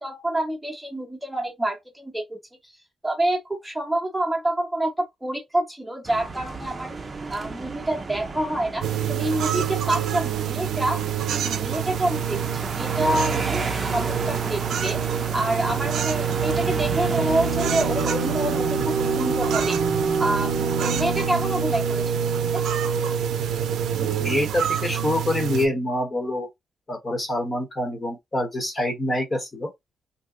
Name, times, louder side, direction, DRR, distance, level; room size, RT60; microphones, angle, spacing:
voice 1, 0.0-2.4 2.6-2.7 3.0-6.9 7.3-19.8 20.2-22.6, right 1 dB, 5° right, 0.9 m, -27 dB
sound 1, 6.0-23.9, right 3 dB, 30° right, 0.6 m, -34 dB
sound 2, 8.8-25.7, right 7 dB, 80° right, 0.5 m, -26 dB
voice 2, 24.0-26.5 26.9-29.7, left 1 dB, 30° left, 1.1 m, -26 dB
2.7 x 2.2 x 3.7 m
cardioid pair, 130°, 0 cm